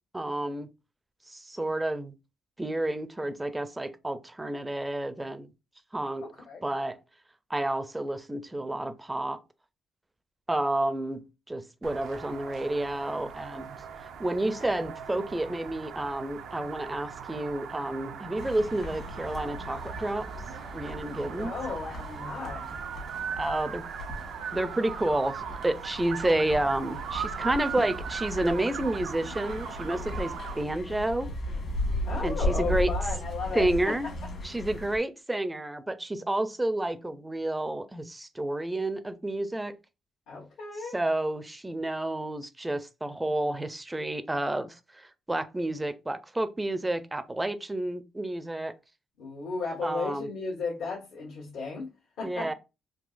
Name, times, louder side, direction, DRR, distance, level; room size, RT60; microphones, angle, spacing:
voice 1, 0.1-0.7 1.3-2.1 2.6-5.5 5.9-6.3 6.6-7.0 7.5-9.4 10.5-13.7 14.2-20.3 20.7-21.5 23.4-23.8 24.5-31.3 32.2-32.9 33.5-34.1 34.4-39.8 40.9-48.7 49.8-50.3 52.2-52.5, right 1 dB, 15° right, 0.5 m, -30 dB
voice 2, 6.2-6.6 14.6-14.7 21.2-22.8 32.1-33.9 40.3-41.0 49.2-51.9 52.2-52.5, left 4 dB, 85° left, 1.4 m, -35 dB
sound 1, 11.8-30.6, right 7 dB, 80° right, 0.5 m, -39 dB
sound 2, 18.4-35.0, left 1 dB, 55° left, 1.4 m, -36 dB
3.6 x 2.8 x 2.5 m
cardioid pair, 90°, 0 cm